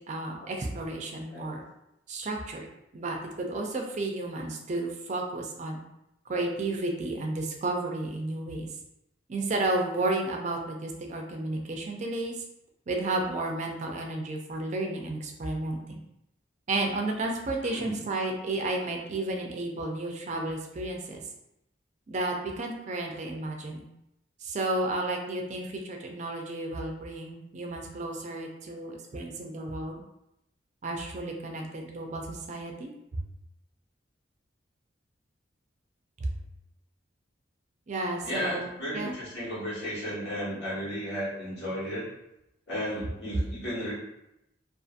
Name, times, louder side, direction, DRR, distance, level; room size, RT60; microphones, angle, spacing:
voice 1, 0.1-1.6 2.1-2.7 2.9-5.8 6.3-8.7 9.3-12.4 12.9-16.0 16.7-21.2 22.1-23.9 24.4-30.0 30.8-33.2 37.9-38.7 38.9-39.1, right 2 dB, 40° right, 2 dB, 0.4 m, -32 dB
voice 2, 17.6-17.9 38.2-42.1 42.7-43.9, equal, 70° left, -9 dB, 1.5 m, -34 dB
2.6 x 2.4 x 2.4 m, 0.85 s
head